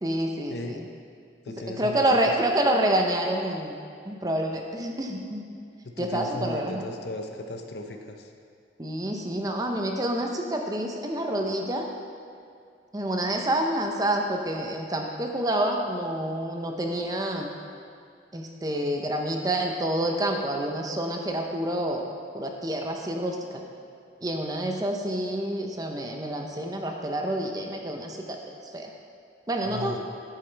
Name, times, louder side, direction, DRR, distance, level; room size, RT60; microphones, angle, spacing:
voice 1, 0.0-0.9 1.7-3.7 4.1-5.4 6.0-6.8 8.8-11.9 12.9-17.5 18.3-22.1 22.3-23.6 24.2-28.4 28.7-28.9 29.5-30.0, right 1 dB, 20° right, 2 dB, 0.6 m, -28 dB
voice 2, 1.4-2.1 5.8-8.3 29.6-30.0, left 2 dB, 65° left, 5 dB, 0.7 m, -36 dB
11.0 x 8.4 x 3.3 m, 2.4 s
head